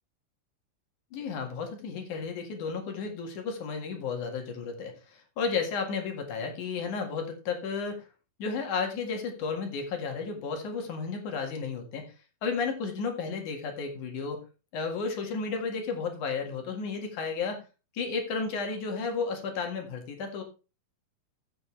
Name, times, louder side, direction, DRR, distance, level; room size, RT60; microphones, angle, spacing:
voice 1, 1.1-8.1 8.4-12.1 12.4-14.4 14.7-17.6 17.9-20.4, left 5 dB, 60° left, 3 dB, 3.0 m, -33 dB
14.5 x 6.8 x 3.2 m, 0.31 s
omnidirectional pair, 4.4 m